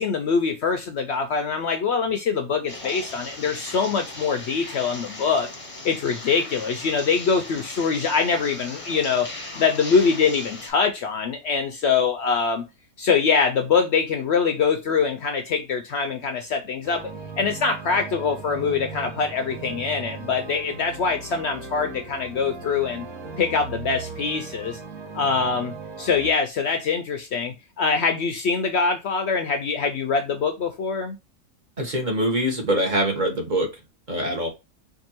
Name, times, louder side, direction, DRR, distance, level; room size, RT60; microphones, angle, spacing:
voice 1, 0.0-5.5 5.8-9.3 9.5-12.6 13.0-17.1 17.4-23.1 23.4-24.8 25.1-31.1, left 5 dB, 65° left, 0.6 m, -24 dB
sound 1, 2.7-10.7, left 2 dB, 25° left, 0.8 m, -38 dB
sound 2, 16.8-26.3, right 4 dB, 85° right, 1.3 m, -38 dB
voice 2, 31.8-33.7 34.1-34.5, right 1 dB, 35° right, 1.0 m, -24 dB
4.5 x 2.6 x 2.8 m
omnidirectional pair, 1.5 m